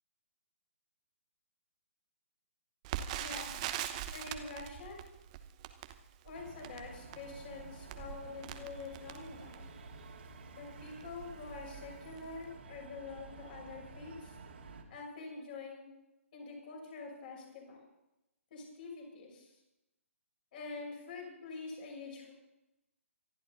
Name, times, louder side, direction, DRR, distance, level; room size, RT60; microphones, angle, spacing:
Crackle, 2.8-9.8 10.4-10.5 10.8-11.1 11.7-11.9 12.2-12.3, right 11 dB, 30° right, 1.0 m, -42 dB
voice 1, 3.1-3.5 4.1-5.0 6.2-9.6 10.5-14.3 14.9-15.9 16.3-17.8 18.5-19.5 20.5-22.3, left 4 dB, 40° left, -1 dB, 6.4 m, -46 dB
sound 1, 6.3-14.8, right 4 dB, 50° right, 2.3 m, -51 dB
25.5 x 11.5 x 4.1 m, 0.94 s
figure-of-eight pair, 135°, 7 cm